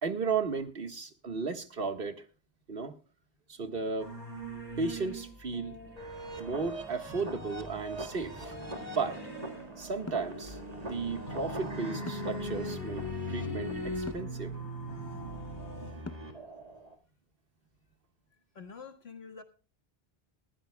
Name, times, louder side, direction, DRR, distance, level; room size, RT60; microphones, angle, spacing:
voice 1, 0.0-2.2 2.7-2.9 3.5-4.1 4.8-5.8 6.4-8.6 8.9-9.2 9.8-14.5, right 4 dB, 65° right, 8 dB, 1.7 m, -34 dB
sound 1, 4.0-15.9, left 1 dB, 50° left, 4.0 m, -42 dB
sound 2, 6.0-16.9, right 1 dB, 40° right, 1.9 m, -41 dB
sound 3, 10.1-10.4 12.1-12.4 14.1-14.4 16.0-16.4, left 2 dB, 20° left, 0.5 m, -42 dB
voice 2, 15.8-16.4 18.5-19.4, left 5 dB, 85° left, 7 dB, 1.9 m, -48 dB
21.0 x 15.0 x 2.2 m, 0.36 s
omnidirectional pair, 1.0 m